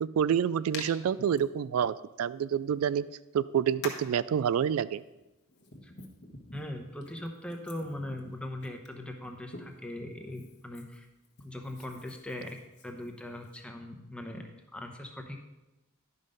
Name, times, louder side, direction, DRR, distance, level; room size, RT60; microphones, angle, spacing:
voice 1, 0.0-3.0 3.3-5.0, right 8 dB, 90° right, 18 dB, 0.3 m, -28 dB
Hands, 0.7-0.9 1.3-1.4 2.7-2.8 3.8-4.1 5.1-9.9 10.3-13.6, left 3 dB, 55° left, 1.3 m, -47 dB
voice 2, 6.5-11.1 11.4-12.6 12.8-15.4, left 1 dB, 5° left, 3 dB, 0.8 m, -40 dB
11.0 x 5.5 x 5.2 m, 1.0 s
head